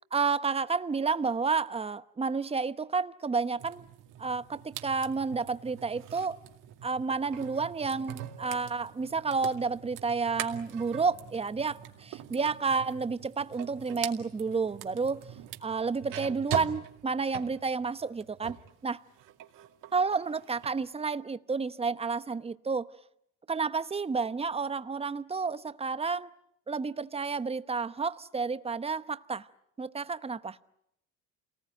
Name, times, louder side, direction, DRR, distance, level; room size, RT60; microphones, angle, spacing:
voice 1, 0.1-3.8 4.2-6.4 6.8-15.3 15.6-18.6 18.8-19.0 19.9-22.9 23.5-26.3 26.7-29.5 29.8-30.6, right 4 dB, 15° right, 1.0 m, -30 dB
sound 1, 3.6-18.7 19.1-20.7, right 11 dB, 65° right, 2.3 m, -43 dB
28.0 x 19.5 x 9.4 m
supercardioid pair, 95°, 34 cm